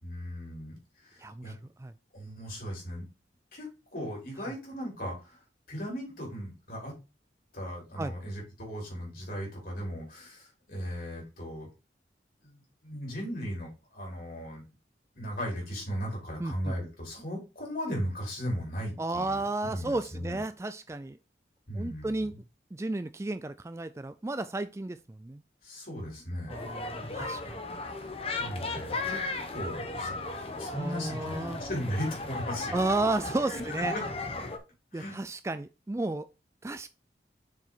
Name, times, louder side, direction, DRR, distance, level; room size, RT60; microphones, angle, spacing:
voice 1, 0.0-1.5 2.1-3.1 3.5-6.9 7.5-11.7 12.4-14.7 15.1-20.4 21.7-22.3 25.6-26.6 28.4-29.2 29.5-30.2 30.6-32.8 33.4-34.0 34.9-35.2, equal, 50° left, 4.5 m, -37 dB
voice 2, 1.2-1.5 1.8-1.9 4.5-4.6 8.0-8.1 16.4-16.7 19.0-21.2 21.8-22.4 22.7-25.4 26.5-27.6 30.7-31.6 32.7-33.9 34.9-36.3 36.6-36.9, right 2 dB, 15° right, 0.3 m, -33 dB
sound 1, 26.5-34.6, left 3 dB, 30° left, 1.0 m, -36 dB
7.0 x 4.9 x 4.0 m
head